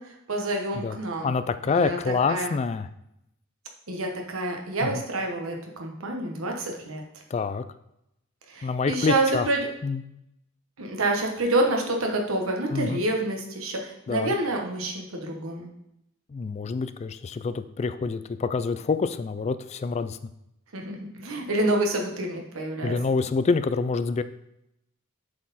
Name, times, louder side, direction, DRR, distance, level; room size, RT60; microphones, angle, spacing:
voice 1, 0.0-1.3 1.6-2.5 3.9-7.0 8.5-9.7 10.8-15.7 20.7-23.0, right 2 dB, 90° right, 1 dB, 1.2 m, -28 dB
voice 2, 1.2-2.9 4.8-5.0 7.3-7.6 8.6-9.5 9.8-10.0 12.7-13.0 14.1-14.3 16.3-20.2 22.8-24.2, left 4 dB, 30° left, 12 dB, 0.3 m, -26 dB
7.4 x 4.3 x 4.1 m, 0.82 s
head